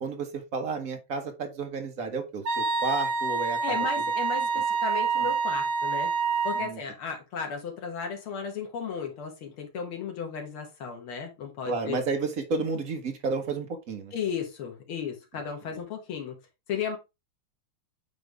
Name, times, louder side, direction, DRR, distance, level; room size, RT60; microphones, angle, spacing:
voice 1, 0.0-3.8 5.2-5.3 6.5-6.8 11.6-14.1, right 4 dB, 45° right, 1.4 m, -31 dB
Wind instrument woodwind instrument, 2.5-6.7, right 5 dB, 70° right, 1.9 m, -27 dB
voice 2, 3.6-6.1 6.4-12.0 14.1-16.4 16.7-17.0, left 6 dB, 85° left, 2.4 m, -34 dB
9.0 x 3.3 x 3.4 m
omnidirectional pair, 2.3 m